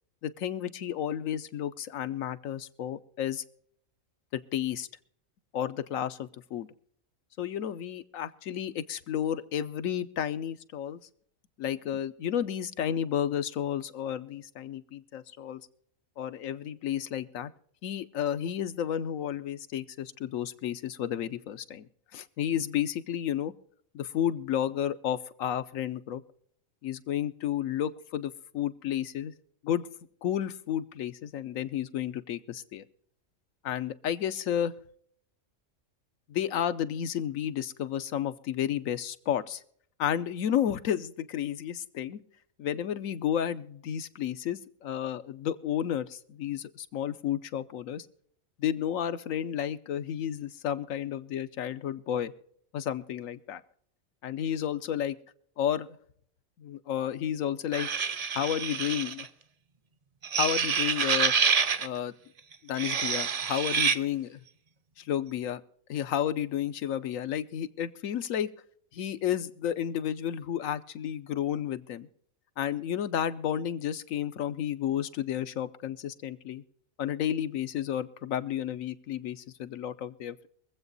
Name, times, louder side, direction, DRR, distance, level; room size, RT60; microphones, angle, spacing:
voice 1, 0.2-3.4 4.3-4.9 5.5-6.7 7.4-11.0 11.6-15.6 16.2-17.5 17.8-23.5 23.9-26.2 26.8-29.3 29.6-29.9 30.2-32.8 33.6-34.7 36.3-39.6 40.0-42.2 42.6-48.1 48.6-52.3 52.7-53.6 54.2-55.2 55.6-56.0 56.6-57.9 58.3-59.3 60.4-61.3 61.8-62.1 62.6-64.4 65.0-65.6 65.9-68.5 68.9-72.1 72.6-76.6 77.0-80.5, left 10 dB, 80° left, 12 dB, 1.2 m, -32 dB
sound 1, 57.7-59.3 60.2-61.9 62.7-64.0, right 6 dB, 45° right, 0.5 m, -27 dB
23.5 x 8.0 x 4.0 m, 0.63 s
omnidirectional pair, 1.4 m